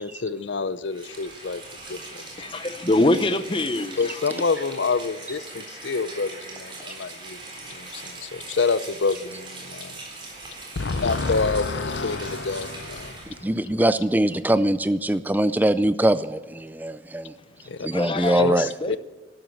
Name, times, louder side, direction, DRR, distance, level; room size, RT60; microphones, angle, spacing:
voice 1, 0.0-1.6 1.9-2.5 4.0-10.0 10.8-13.5 17.7-17.9 18.4-19.0, left 4 dB, 80° left, 0.7 m, -27 dB
Rain, 0.9-13.5, right 2 dB, 25° right, 4.1 m, -40 dB
voice 2, 2.4-4.1 17.9-19.0, left 2 dB, 30° left, 0.9 m, -24 dB
voice 3, 13.4-17.3 17.8-18.7, right 1 dB, 10° right, 0.4 m, -22 dB
12.5 x 12.5 x 7.8 m
head